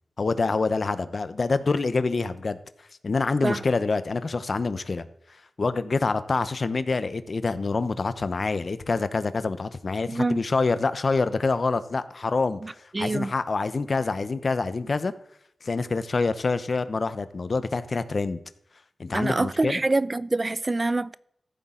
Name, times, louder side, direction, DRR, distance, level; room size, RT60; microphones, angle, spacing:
voice 1, 0.2-2.6 3.0-5.1 5.6-15.1 15.6-18.4 19.0-19.8, left 3 dB, 60° left, 0.8 m, -26 dB
voice 2, 10.1-10.4 12.6-13.3 19.1-21.2, right 2 dB, 40° right, 0.4 m, -26 dB
14.5 x 8.2 x 3.8 m
cardioid pair, 50°, 0 cm